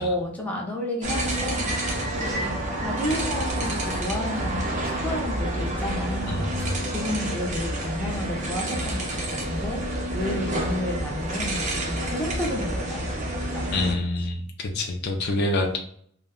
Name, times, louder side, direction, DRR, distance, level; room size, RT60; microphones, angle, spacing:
voice 1, 0.0-2.6 2.8-6.7 6.9-9.8 10.1-13.8, left 1 dB, 5° left, -2 dB, 0.6 m, -31 dB
sound 1, 1.0-13.9, right 1 dB, 35° right, 0.6 m, -29 dB
voice 2, 6.3-6.8 13.7-15.8, left 2 dB, 55° left, 2 dB, 0.5 m, -27 dB
2.5 x 2.1 x 3.6 m, 0.64 s
head